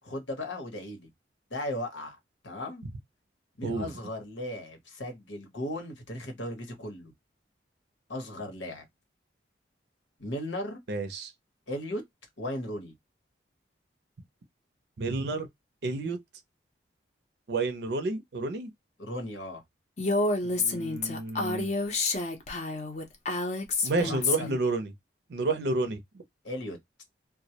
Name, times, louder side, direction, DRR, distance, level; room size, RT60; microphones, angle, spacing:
voice 1, 0.0-1.1 1.5-2.2 2.4-2.9 3.6-7.1 8.1-8.8 10.2-10.8 11.7-12.0 12.4-12.9 19.0-19.6 24.0-24.5 26.4-26.8, left 1 dB, 90° left, 0.9 m, -36 dB
voice 2, 10.9-11.3 15.0-15.5 15.8-16.2 17.5-18.7 20.4-21.7 23.8-24.9 25.3-26.0, right 3 dB, 65° right, 0.5 m, -30 dB
Female speech woman speaking, 20.0-24.6, left 3 dB, 35° left, 0.5 m, -29 dB
2.2 x 2.0 x 2.7 m
head